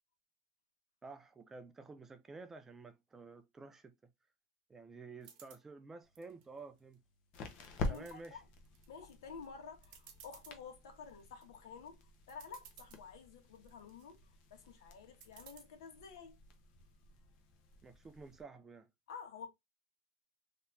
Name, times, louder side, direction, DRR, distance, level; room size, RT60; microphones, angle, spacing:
voice 1, 1.0-3.9 4.7-7.0 7.9-8.4 17.8-18.9, right 3 dB, 15° right, 0.4 m, -51 dB
sound 1, 5.2-5.6 6.2-6.9 7.3-8.1 8.7-9.1 9.4-9.5 9.8-10.6 11.1-11.4 12.0-12.1 12.3-13.0 13.6-14.1 15.2-15.6, right 8 dB, 50° right, 1.0 m, -58 dB
sound 2, 6.0-18.4, left 2 dB, 40° left, 0.8 m, -48 dB
voice 2, 7.8-8.4 8.9-14.2 14.5-16.4 19.1-19.5, left 6 dB, 75° left, 1.3 m, -51 dB
3.4 x 2.8 x 2.6 m
supercardioid pair, 145°, 3 cm